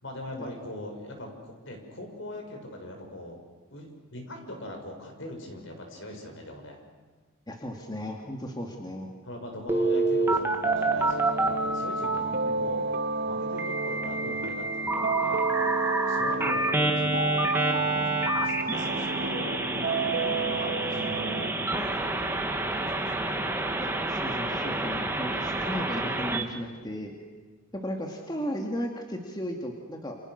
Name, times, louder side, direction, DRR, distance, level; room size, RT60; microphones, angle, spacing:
voice 1, 0.0-3.4 3.7-6.8 9.2-12.8 13.2-15.5 16.0-23.6, left 1 dB, 60° left, 3 dB, 6.8 m, -41 dB
voice 2, 7.5-9.1 23.8-27.1 27.7-30.2, equal, 20° left, 2 dB, 2.5 m, -35 dB
Telephone, 9.7-12.2 13.6-26.4, right 2 dB, 10° right, 2.0 m, -28 dB
sound 1, 10.6-21.5, right 4 dB, 50° right, 1.9 m, -31 dB
29.5 x 28.5 x 6.7 m, 1.3 s
head